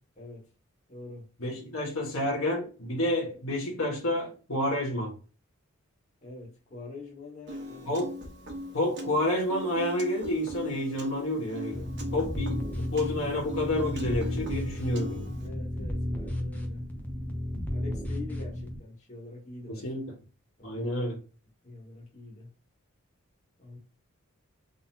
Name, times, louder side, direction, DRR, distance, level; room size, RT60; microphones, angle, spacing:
voice 1, 0.9-1.3 6.2-7.9 11.9-12.1 15.4-16.9 17.7-20.0 20.6-20.7 21.6-22.5 23.6-23.8, left 3 dB, 35° left, 1.7 m, -45 dB
voice 2, 1.4-5.1 7.9-8.1 8.7-11.8 12.1-15.3 19.7-20.1 20.6-21.2, left 1 dB, 80° left, 1.4 m, -29 dB
Piano, 7.5-15.5, left 1 dB, 55° right, 1.2 m, -40 dB
sound 1, 11.7-18.8, left 1 dB, 10° left, 0.8 m, -33 dB
3.9 x 3.6 x 2.8 m
head